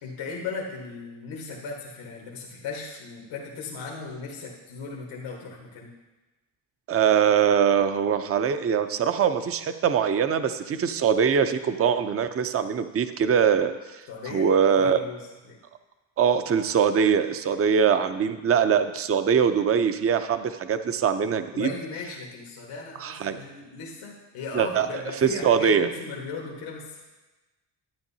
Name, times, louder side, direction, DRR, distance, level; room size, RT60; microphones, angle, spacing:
voice 1, 0.0-5.9 14.1-14.5 14.8-15.2 15.5-15.6 21.5-27.0, left 4 dB, 85° left, -2 dB, 1.5 m, -37 dB
voice 2, 6.9-14.0 14.3-15.0 16.2-21.7 23.0-23.4 24.5-24.9 25.2-25.9, right 7 dB, 30° right, 10 dB, 0.5 m, -22 dB
12.0 x 8.9 x 2.8 m, 1.1 s
cardioid pair, 85°, 46 cm